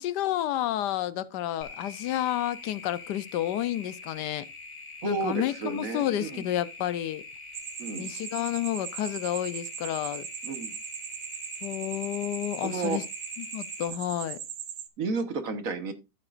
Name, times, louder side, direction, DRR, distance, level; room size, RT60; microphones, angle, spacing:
voice 1, 0.0-4.4 5.0-7.2 8.0-10.3 11.6-13.0 13.4-14.4, left 12 dB, 80° left, 1.3 m, -30 dB
sound 1, 1.6-13.9, left 3 dB, 50° left, 2.2 m, -44 dB
voice 2, 5.0-6.5 7.8-8.1 10.4-10.7 12.6-13.0 15.0-15.9, right 4 dB, 55° right, 1.5 m, -32 dB
sound 2, 7.5-14.9, right 9 dB, 75° right, 1.5 m, -39 dB
12.0 x 8.9 x 2.5 m
omnidirectional pair, 1.8 m